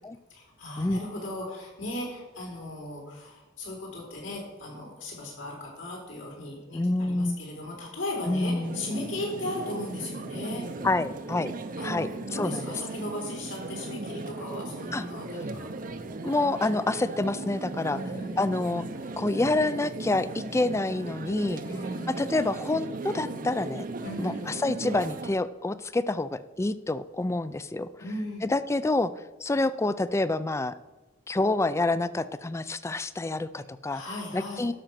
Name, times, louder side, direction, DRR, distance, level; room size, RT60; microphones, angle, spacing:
voice 1, 0.3-10.7 11.8-15.7 17.8-18.4 21.6-22.3 24.0-24.5 28.0-28.5 33.9-34.7, left 1 dB, 85° left, -1 dB, 3.9 m, -37 dB
voice 2, 6.7-7.4 8.3-8.8 10.8-11.5 11.8-12.6 14.9-15.0 16.2-18.0 18.4-18.9 19.2-21.6 22.1-23.8 24.2-27.9 28.4-29.1 29.4-30.7 31.3-34.0 34.3-34.7, left 2 dB, 15° left, 15 dB, 0.4 m, -27 dB
sound 1, 8.6-25.3, right 2 dB, 45° right, 0.7 m, -37 dB
12.0 x 6.4 x 5.9 m, 1.1 s
head